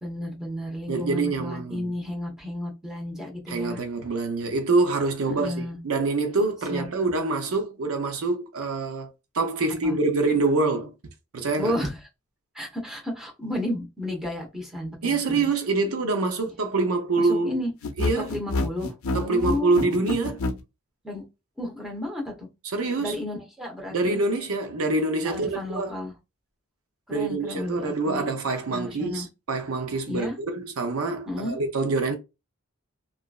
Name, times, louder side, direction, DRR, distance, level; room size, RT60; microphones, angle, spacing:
voice 1, 0.0-3.8 5.2-5.8 6.7-6.8 9.8-10.0 11.6-12.0 12.5-15.4 17.2-17.7 18.2-19.9 21.0-21.2 21.6-22.5 23.0-24.2 25.2-26.1 27.1-28.3 28.7-29.3 30.1-30.3 31.3-31.6, left 1 dB, ahead, 0.9 m, -32 dB
voice 2, 0.9-1.9 3.5-9.1 9.3-10.9 11.3-11.7 15.0-17.6 18.0-18.3 19.1-20.4 22.6-23.2 23.9-25.9 27.1-32.2, right 3 dB, 75° right, 0.6 m, -25 dB
sound 1, 17.8-20.6, left 2 dB, 70° left, 0.5 m, -27 dB
2.9 x 2.4 x 2.3 m
head